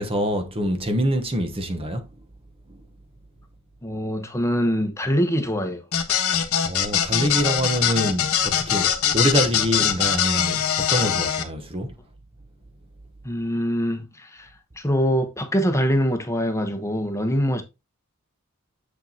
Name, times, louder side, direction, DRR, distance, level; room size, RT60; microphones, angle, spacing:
voice 1, 0.0-2.1 6.6-11.9, equal, 25° right, 0.9 m, -25 dB
voice 2, 3.8-5.8 13.2-14.5 14.8-17.6, equal, 15° left, 1.0 m, -24 dB
sound 1, 5.9-11.4, left 9 dB, 75° left, 1.2 m, -22 dB
7.5 x 6.5 x 2.8 m
head